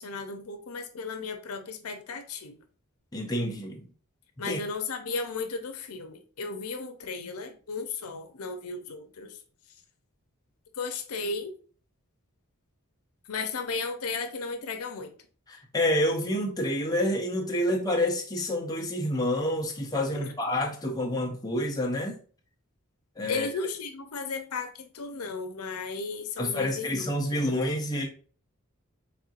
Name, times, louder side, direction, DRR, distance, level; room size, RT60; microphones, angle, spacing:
voice 1, 0.0-2.6 4.4-9.4 10.7-11.5 13.3-15.1 20.1-20.3 23.3-27.5, left 4 dB, 80° left, 0.7 m, -35 dB
voice 2, 3.1-3.8 4.5-4.6 15.5-22.2 23.2-23.5 26.4-28.1, left 1 dB, 15° left, 0.7 m, -28 dB
4.3 x 3.6 x 2.5 m
head